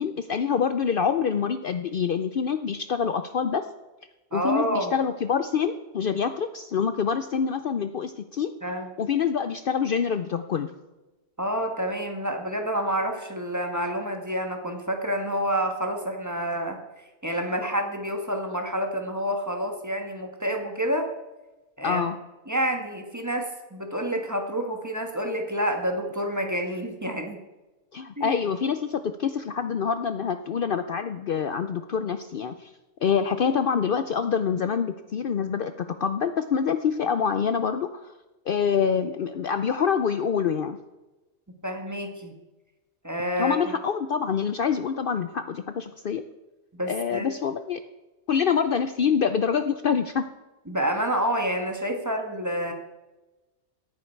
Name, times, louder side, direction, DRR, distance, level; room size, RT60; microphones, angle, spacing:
voice 1, 0.0-3.7 4.3-8.5 9.0-10.7 21.8-22.2 27.9-32.7 33.0-38.1 38.5-40.8 43.4-46.2 46.9-47.8 48.3-50.3, left 7 dB, 55° left, 10 dB, 0.7 m, -26 dB
voice 2, 4.3-4.9 8.6-8.9 11.4-16.8 17.2-21.1 21.8-22.0 22.5-27.4 28.2-28.4 41.6-42.3 43.0-43.6 46.7-47.3 50.7-52.7, equal, 15° right, 3 dB, 1.5 m, -28 dB
17.5 x 9.7 x 4.5 m, 1.1 s
omnidirectional pair, 1.2 m